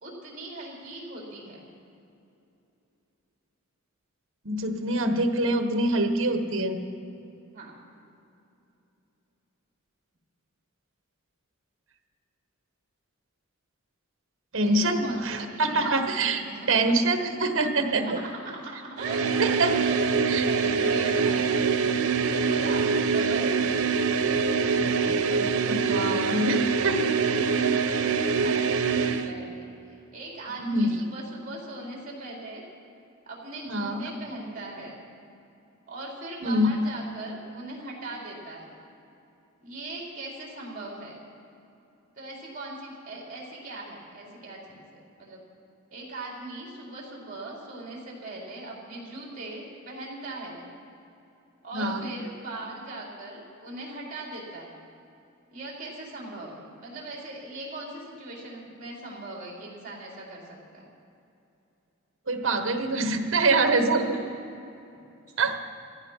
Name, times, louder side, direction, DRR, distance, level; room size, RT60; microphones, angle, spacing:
voice 1, 0.0-1.6 7.5-7.7 14.6-17.0 17.8-19.3 19.6-21.6 22.2-23.5 24.4-25.0 27.3-32.6 33.3-35.0 35.9-38.8 39.6-41.2 42.2-45.4 45.9-50.7 51.6-54.7 55.5-60.8 63.7-64.3, right 2 dB, 40° right, -3 dB, 3.9 m, -40 dB
voice 2, 4.4-6.8 14.5-18.2 19.4-19.7 20.3-20.4 25.4-27.3 29.0-29.1 30.6-30.9 33.7-34.0 36.4-36.7 51.7-52.1 62.3-64.0 65.4-65.7, right 2 dB, 60° right, 7 dB, 1.2 m, -25 dB
sound 1, 19.0-29.3, right 5 dB, 90° right, 0.8 m, -24 dB
14.5 x 14.0 x 5.7 m, 2.8 s
head